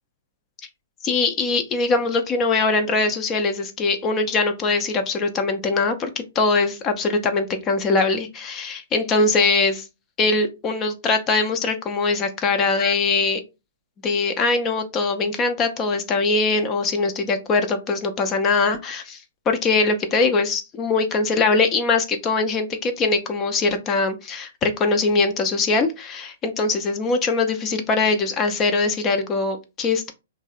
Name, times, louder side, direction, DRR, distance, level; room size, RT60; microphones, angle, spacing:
voice 1, 1.0-9.8 10.2-13.4 14.0-19.2 19.5-30.1, left 3 dB, 25° left, 0.4 m, -22 dB
2.6 x 2.0 x 2.3 m
hypercardioid pair, 135°, 0 cm